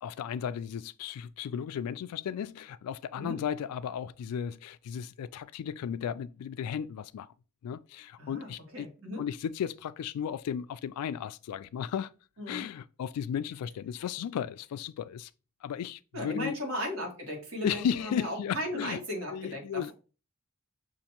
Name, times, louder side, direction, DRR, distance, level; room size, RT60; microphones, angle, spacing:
voice 1, 0.0-7.3 7.6-8.9 9.2-12.1 12.5-15.3 15.6-16.6 17.6-19.0 19.3-19.9, left 8 dB, 90° left, 0.3 m, -35 dB
voice 2, 8.2-9.2 12.4-12.6 16.1-19.9, equal, 60° right, 1.7 m, -36 dB
6.4 x 2.5 x 2.8 m
head